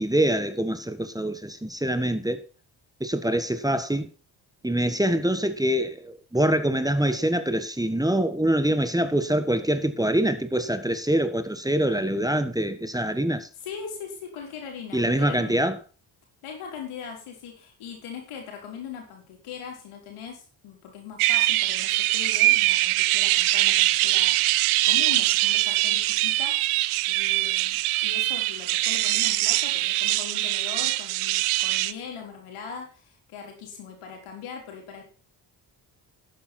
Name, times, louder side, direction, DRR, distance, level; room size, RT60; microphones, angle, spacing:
voice 1, 0.0-2.4 3.0-4.1 4.6-13.5 14.9-15.8, right 1 dB, 5° right, 1.4 m, -24 dB
voice 2, 13.6-15.6 16.4-24.4 24.8-26.6 27.1-35.0, left 6 dB, 90° left, 4.1 m, -40 dB
sound 1, 21.2-31.9, right 17 dB, 90° right, 0.7 m, -23 dB
11.5 x 9.2 x 4.4 m
supercardioid pair, 55°, 49 cm